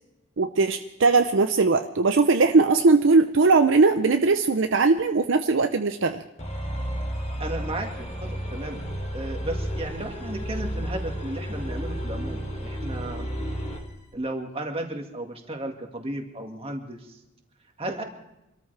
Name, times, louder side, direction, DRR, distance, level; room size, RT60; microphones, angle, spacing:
voice 1, 0.4-6.2, right 3 dB, 60° right, 6 dB, 0.7 m, -20 dB
sound 1, 6.4-13.9, equal, 35° left, 3.1 m, -32 dB
voice 2, 7.4-8.8 9.1-13.3 14.1-17.2 17.8-18.0, right 1 dB, 30° right, 2 dB, 2.0 m, -34 dB
26.5 x 13.5 x 3.4 m, 0.88 s
head